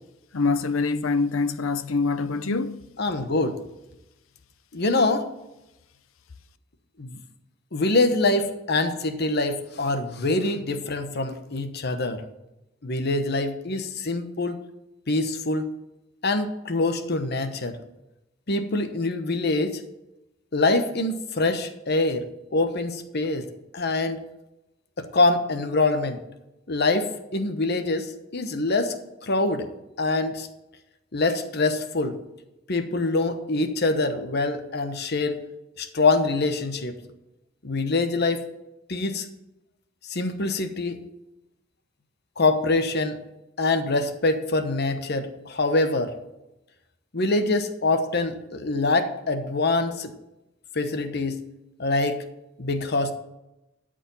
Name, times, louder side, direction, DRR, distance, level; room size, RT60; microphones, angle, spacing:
voice 1, 0.3-2.7, left 4 dB, 90° left, 0.7 m, -24 dB
voice 2, 3.0-3.6 4.7-5.3 7.0-7.2 7.7-12.2 12.8-14.6 15.1-15.7 16.2-17.8 18.5-19.8 20.5-23.5 23.7-24.2 25.0-26.2 26.7-29.0 29.2-29.7 30.0-30.5 31.1-32.2 32.7-35.4 35.8-37.0 37.6-38.4 38.9-39.3 40.1-41.0 42.4-43.2 43.6-46.1 47.1-50.1 50.7-51.4 51.8-52.2 52.6-53.1, left 2 dB, 55° left, 1.0 m, -24 dB
12.5 x 5.1 x 7.0 m
head